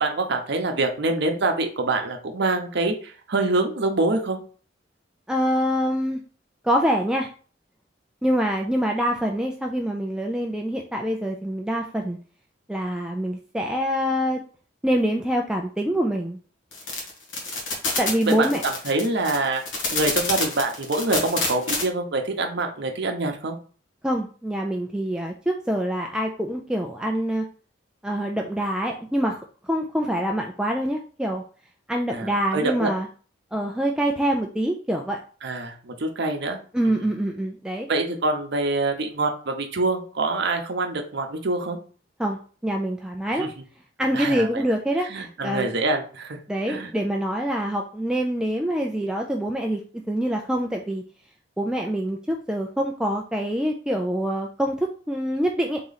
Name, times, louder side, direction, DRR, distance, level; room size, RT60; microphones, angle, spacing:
voice 1, 0.0-4.4 18.3-19.6 19.9-23.6 32.1-32.9 35.4-36.6 36.8-37.0 37.9-41.8 43.4-43.5 44.1-44.6 45.1-46.4 46.7-46.9, right 2 dB, 65° right, 4 dB, 0.8 m, -25 dB
voice 2, 5.3-6.2 6.6-7.3 8.2-12.2 12.7-14.4 14.8-16.4 18.0-18.6 24.0-27.4 28.0-31.4 31.9-33.1 33.5-35.2 36.7-37.9 42.2-43.5 44.0-45.8 46.5-49.8 50.1-51.0 51.6-55.8, equal, 5° right, 1 dB, 0.3 m, -25 dB
sound 1, 16.7-21.8, left 3 dB, 75° left, 1.6 m, -27 dB
3.7 x 3.0 x 4.0 m, 0.40 s
head